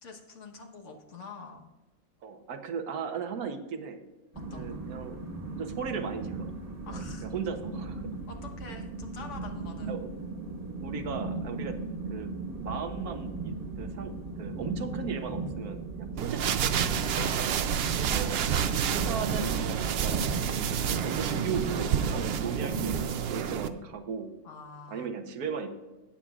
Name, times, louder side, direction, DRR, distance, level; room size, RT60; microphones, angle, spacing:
voice 1, 0.0-1.7 4.5-4.8 6.9-7.3 8.3-10.0 17.1-17.5 24.4-25.2, left 4 dB, 55° left, 3 dB, 1.5 m, -45 dB
voice 2, 2.2-4.0 4.5-5.2 5.5-6.5 6.8-8.1 9.9-10.1 10.8-11.8 12.1-16.9 17.9-18.4 18.9-20.2 20.8-24.3 24.9-25.7, right 6 dB, 85° right, 6 dB, 1.4 m, -37 dB
sound 1, 4.3-23.1, right 3 dB, 40° right, 1.6 m, -37 dB
sound 2, 16.2-23.7, right 8 dB, 65° right, 0.6 m, -29 dB
17.5 x 7.4 x 2.4 m, 1.2 s
omnidirectional pair, 1.5 m